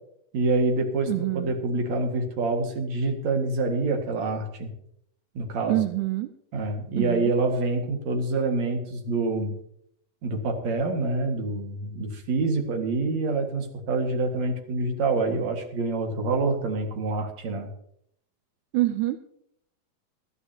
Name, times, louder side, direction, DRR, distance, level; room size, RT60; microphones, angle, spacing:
voice 1, 0.3-4.7 5.3-5.8 6.5-9.5 10.2-17.7, right 3 dB, 60° right, 2 dB, 3.1 m, -26 dB
voice 2, 1.1-1.5 5.7-6.3 7.0-7.3 18.7-19.2, right 17 dB, 80° right, 9 dB, 2.1 m, -26 dB
20.5 x 13.5 x 2.9 m, 0.71 s
omnidirectional pair, 3.8 m